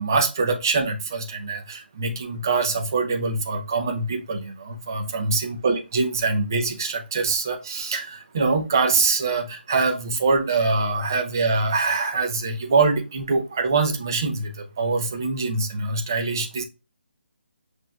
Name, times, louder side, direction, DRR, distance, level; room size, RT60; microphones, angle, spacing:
voice 1, 0.0-16.6, right 3 dB, 20° right, 3 dB, 0.5 m, -24 dB
5.9 x 2.5 x 2.3 m, 0.28 s
hypercardioid pair, 180°, 6 cm